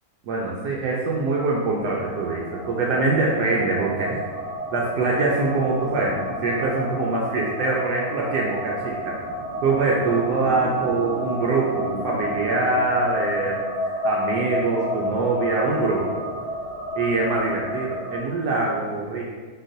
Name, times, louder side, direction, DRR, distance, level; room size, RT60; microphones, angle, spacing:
voice 1, 0.2-4.2 4.7-9.1 9.6-16.2 17.0-19.2, right 3 dB, 75° right, -3 dB, 1.1 m, -24 dB
sound 1, 1.8-18.2, equal, 40° right, 1.4 m, -31 dB
4.5 x 4.0 x 2.6 m, 1.5 s
omnidirectional pair, 1.9 m